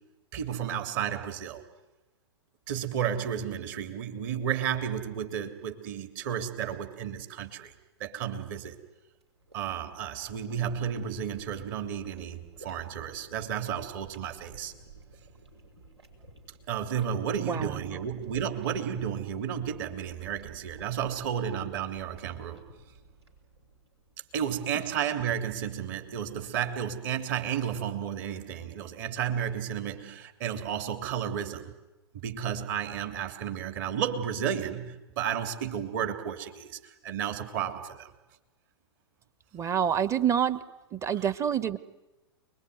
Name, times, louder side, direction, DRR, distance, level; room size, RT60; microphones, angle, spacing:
voice 1, 0.3-1.6 2.7-7.7 8.0-8.8 9.5-14.7 16.7-22.6 24.3-31.7 32.1-38.1, right 8 dB, 45° right, 7 dB, 3.2 m, -32 dB
sound 1, 9.1-24.4, right 2 dB, 75° right, 6.2 m, -53 dB
voice 2, 17.4-18.0 39.5-40.6 40.9-41.8, right 8 dB, 20° right, 16 dB, 1.2 m, -27 dB
29.0 x 21.5 x 9.5 m, 1.0 s
figure-of-eight pair, 105°, 14 cm